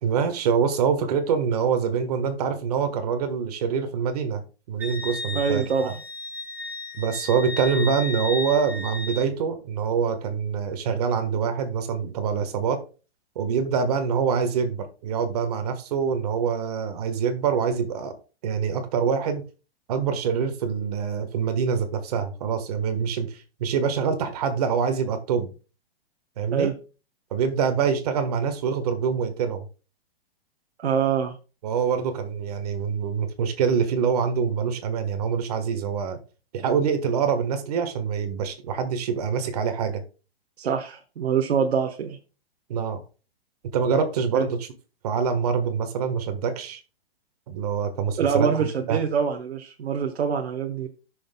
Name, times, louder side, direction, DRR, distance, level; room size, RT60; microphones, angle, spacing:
voice 1, 0.0-4.4 4.7-5.9 6.9-12.8 13.3-18.2 18.4-19.4 19.9-25.5 26.4-26.7 27.3-29.6 31.6-36.2 36.5-40.0 42.7-43.0 43.7-44.7 45.0-46.8 47.5-49.0, right 6 dB, 40° right, 7 dB, 1.5 m, -25 dB
Wind instrument woodwind instrument, 4.8-9.3, left 3 dB, 5° right, 1.9 m, -34 dB
voice 2, 5.3-6.0 26.5-26.7 30.8-31.3 40.6-42.2 44.3-44.4 48.2-50.9, right 6 dB, 90° right, 3 dB, 1.3 m, -25 dB
18.5 x 6.5 x 2.3 m, 0.34 s
hypercardioid pair, 170°, 31 cm